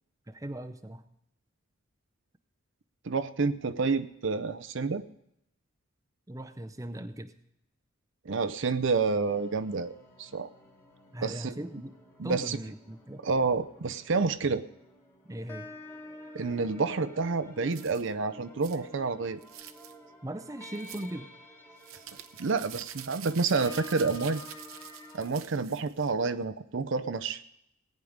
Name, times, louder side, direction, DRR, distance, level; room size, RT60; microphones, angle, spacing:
voice 1, 0.3-1.0 6.3-7.3 11.1-11.9 12.2-13.2 15.2-15.7 20.2-21.3, right 1 dB, 15° right, 8 dB, 0.6 m, -39 dB
voice 2, 3.0-5.0 8.3-10.5 11.2-11.6 12.2-12.6 13.2-14.6 16.3-19.4 22.4-24.4 25.1-27.4, right 4 dB, 60° right, 13 dB, 0.6 m, -29 dB
sound 1, 9.2-25.3, left 2 dB, 10° left, 1.7 m, -50 dB
sound 2, 17.7-18.1 18.6-18.8 19.4-19.9 20.8-21.1 21.8-26.1, right 11 dB, 85° right, 0.8 m, -46 dB
18.0 x 9.4 x 5.1 m, 0.78 s
head